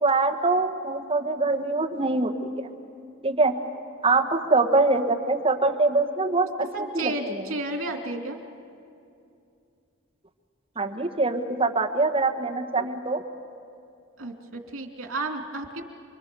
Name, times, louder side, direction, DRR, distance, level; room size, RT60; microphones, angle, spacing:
voice 1, 0.0-2.7 3.2-3.5 4.0-6.5 6.9-7.1 10.8-13.2, right 3 dB, 25° right, 2 dB, 1.4 m, -23 dB
voice 2, 6.7-8.4 14.2-15.8, right 2 dB, 80° right, 3 dB, 2.7 m, -32 dB
29.0 x 23.0 x 6.9 m, 2.5 s
head